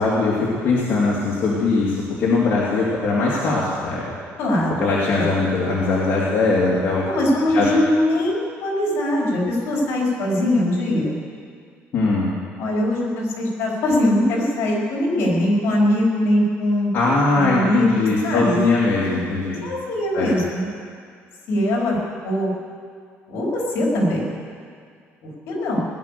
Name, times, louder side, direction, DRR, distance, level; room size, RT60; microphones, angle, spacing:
voice 1, 0.0-4.1 4.8-7.0 7.5-7.7 11.9-12.3 16.9-19.6 20.1-20.3, left 3 dB, 45° left, -7 dB, 2.7 m, -20 dB
voice 2, 4.4-4.8 5.1-5.3 7.0-11.1 12.6-16.9 17.3-18.6 19.6-20.7 21.5-22.0 22.2-22.5 23.3-24.3 25.5-25.9, left 1 dB, 60° left, -3 dB, 4.9 m, -21 dB
19.0 x 10.5 x 6.9 m, 2.1 s
cardioid pair, 165°, 5 cm